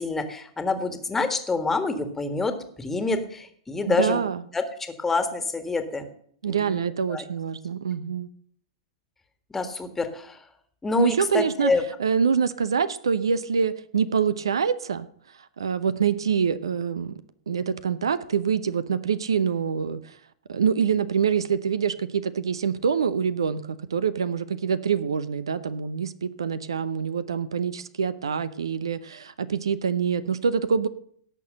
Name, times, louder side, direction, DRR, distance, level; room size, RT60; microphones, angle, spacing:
voice 1, 0.0-2.5 2.8-4.2 4.5-6.1 6.5-7.3 9.5-10.4 10.8-11.8, left 3 dB, 10° left, 8 dB, 1.7 m, -27 dB
voice 2, 3.8-4.4 6.4-8.3 11.0-11.7 12.0-15.1 15.6-17.1 17.5-20.2 20.5-30.9, right 6 dB, 70° right, 15 dB, 0.7 m, -25 dB
17.5 x 6.8 x 6.6 m, 0.63 s
figure-of-eight pair, 100°, 3 cm